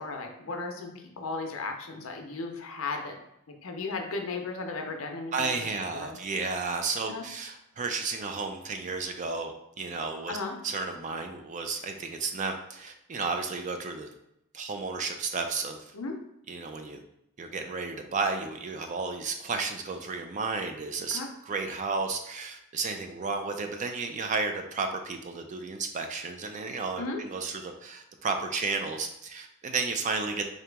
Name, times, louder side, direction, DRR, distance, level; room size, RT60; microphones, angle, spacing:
voice 1, 0.0-3.2 3.6-6.2 7.1-7.2 10.3-10.5 15.9-16.2 21.1-21.3 27.0-27.2, left 3 dB, 60° left, 3 dB, 0.6 m, -35 dB
voice 2, 5.3-10.4 10.6-14.1 14.5-15.9 16.5-17.0 17.4-30.5, right 4 dB, 35° right, 6 dB, 0.3 m, -32 dB
3.8 x 2.9 x 3.4 m, 0.81 s
head